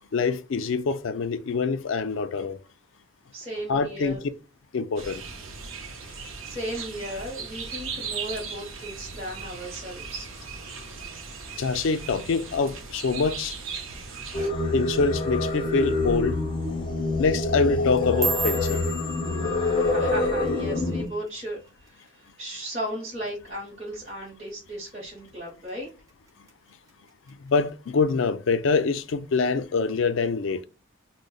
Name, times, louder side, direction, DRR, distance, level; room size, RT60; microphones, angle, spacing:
voice 1, 0.1-2.6 3.7-4.2 4.7-5.2 11.6-13.6 14.7-16.4 17.2-18.8 27.3-30.6, left 4 dB, 75° left, 0.4 m, -25 dB
voice 2, 3.3-4.2 6.1-10.3 19.8-25.9, equal, 30° right, 0.9 m, -36 dB
sound 1, 5.0-14.5, right 5 dB, 85° right, 0.7 m, -38 dB
Singing, 14.3-21.1, left 2 dB, 25° left, 0.6 m, -26 dB
sound 2, 17.8-22.2 22.5-22.9 23.3-23.7 24.1-24.3 24.9-25.3 25.7-26.5 26.9-27.3 28.1-28.2, right 4 dB, 15° right, 0.5 m, -35 dB
5.0 x 2.1 x 2.3 m
head